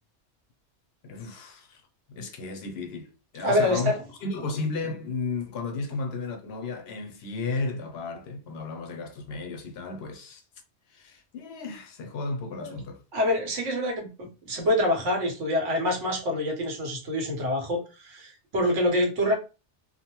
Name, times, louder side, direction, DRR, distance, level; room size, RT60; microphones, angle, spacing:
voice 1, 1.0-1.8 2.1-3.9 4.2-10.4 10.9-13.0, left 3 dB, 65° left, 0.7 m, -34 dB
voice 2, 3.4-4.0 12.6-12.7 13.1-19.3, left 1 dB, 85° right, 1.2 m, -26 dB
2.6 x 2.1 x 2.8 m
omnidirectional pair, 1.2 m